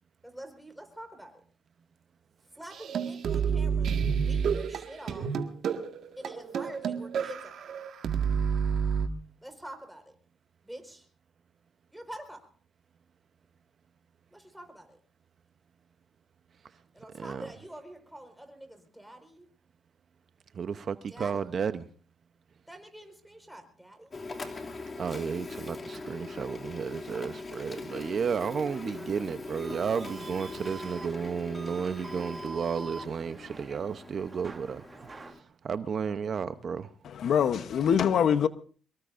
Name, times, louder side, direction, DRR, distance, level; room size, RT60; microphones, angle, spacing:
voice 1, 0.2-1.4 2.4-5.3 6.2-7.7 9.4-10.2 10.6-11.1 11.9-12.5 14.3-15.0 16.9-19.5 21.1-21.5 22.7-24.2, right 1 dB, 5° right, 4.7 m, -46 dB
sound 1, 2.7-9.1, right 6 dB, 65° right, 1.8 m, -29 dB
voice 2, 20.5-21.8 25.0-36.9, right 6 dB, 50° right, 0.8 m, -33 dB
Printer, 24.1-35.4, left 3 dB, 35° left, 2.7 m, -42 dB
sound 2, 28.7-35.3, right 3 dB, 30° right, 1.1 m, -46 dB
voice 3, 37.0-38.5, left 8 dB, 65° left, 0.9 m, -24 dB
24.5 x 22.0 x 2.6 m
cardioid pair, 90°, 0 cm